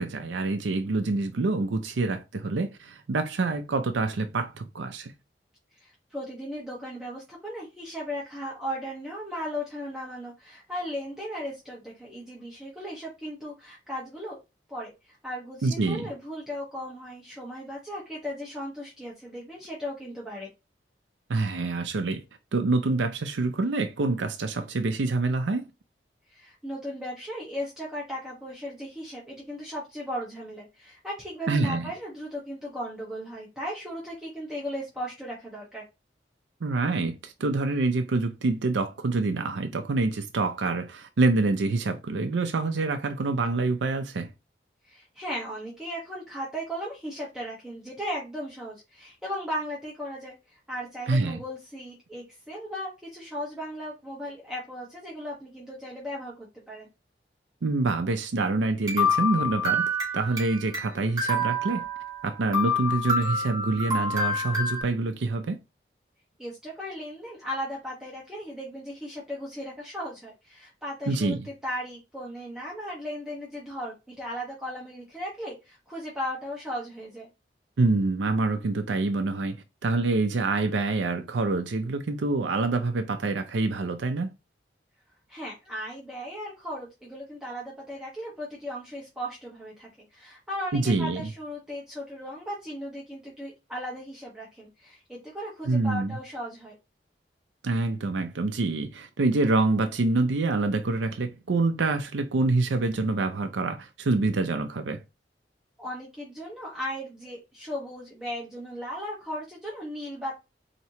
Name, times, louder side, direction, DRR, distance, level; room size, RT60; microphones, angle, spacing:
voice 1, 0.0-5.1 15.6-16.1 21.3-22.2 22.5-25.7 31.5-31.9 36.6-44.3 51.1-51.4 57.6-61.8 62.2-65.6 71.1-71.5 77.8-84.3 90.7-91.3 95.7-96.2 97.6-105.0, right 3 dB, 90° right, 0.5 m, -26 dB
voice 2, 5.8-14.4 14.7-20.5 26.3-35.8 44.8-56.9 66.4-71.4 71.6-77.3 85.3-96.7 105.8-110.4, equal, 5° right, 1.1 m, -36 dB
sound 1, 58.9-60.8 61.2-62.2 62.5-64.8, left 1 dB, 20° right, 1.9 m, -27 dB
4.3 x 2.9 x 2.8 m
head